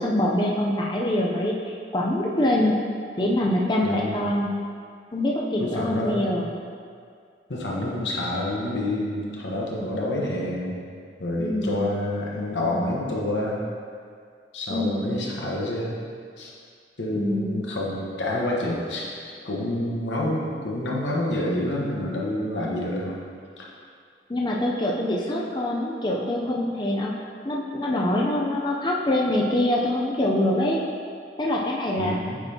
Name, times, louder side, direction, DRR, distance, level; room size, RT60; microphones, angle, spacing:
voice 1, 0.0-2.8 3.2-4.5 5.1-6.5 11.4-11.9 14.7-15.2 17.1-17.6 24.3-27.2 27.4-30.8 31.4-32.2, left 1 dB, 25° left, -2 dB, 0.5 m, -24 dB
voice 2, 3.8-4.2 5.6-6.4 7.5-10.8 11.2-13.6 14.5-16.0 16.4-16.5 17.0-19.1 19.4-23.2 23.6-23.7 32.0-32.4, left 1 dB, 90° left, -3 dB, 1.1 m, -28 dB
8.1 x 5.3 x 2.8 m, 2.2 s
head